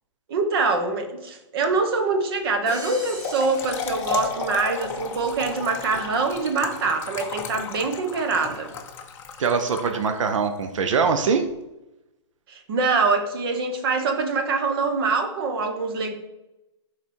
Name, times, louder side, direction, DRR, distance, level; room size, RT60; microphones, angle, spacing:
voice 1, 0.3-8.7 12.5-16.2, right 4 dB, 50° right, 6 dB, 1.2 m, -24 dB
Crash cymbal, 2.7-4.9, right 1 dB, 20° right, 1.6 m, -40 dB
Trickle dribble / Fill (with liquid), 3.0-10.4, left 5 dB, 15° left, 0.6 m, -34 dB
voice 2, 9.4-11.5, right 5 dB, 85° right, 7 dB, 0.7 m, -22 dB
6.0 x 4.3 x 4.4 m, 0.96 s
hypercardioid pair, 160°, 16 cm